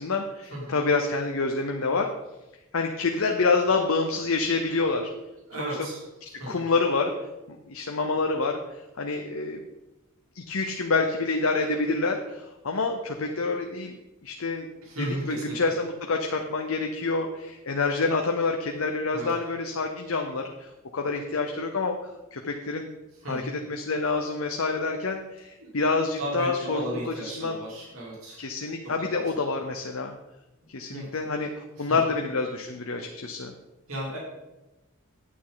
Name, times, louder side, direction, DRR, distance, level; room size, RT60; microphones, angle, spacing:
voice 1, 0.0-2.1 2.7-5.1 5.6-5.8 6.5-7.1 7.7-9.6 10.3-13.9 14.2-14.7 15.0-22.0 22.3-22.9 23.3-27.6 28.4-30.1 30.7-33.5, left 3 dB, 70° left, 3 dB, 0.8 m, -27 dB
voice 2, 5.5-6.0 6.4-6.6 14.8-15.6 19.1-19.3 23.2-23.5 25.6-25.7 26.2-28.4 30.9-31.1 31.8-32.0 33.9-34.2, right 1 dB, 75° right, -4 dB, 3.2 m, -34 dB
9.2 x 8.7 x 3.9 m, 1.0 s
head